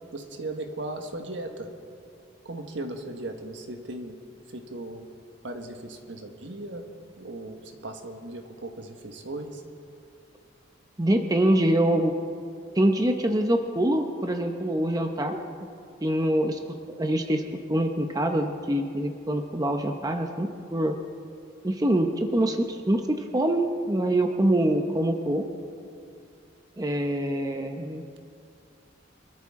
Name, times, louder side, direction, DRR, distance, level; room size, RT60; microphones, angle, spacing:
voice 1, 0.1-1.7 2.4-4.2 4.5-5.0 5.4-6.8 7.2-9.6, right 2 dB, 70° right, 5 dB, 1.5 m, -37 dB
voice 2, 11.0-12.1 12.7-15.4 16.0-16.6 16.9-21.0 21.6-25.4 26.8-28.0, right 1 dB, 20° right, 4 dB, 0.7 m, -25 dB
24.5 x 13.0 x 3.7 m, 2.4 s
head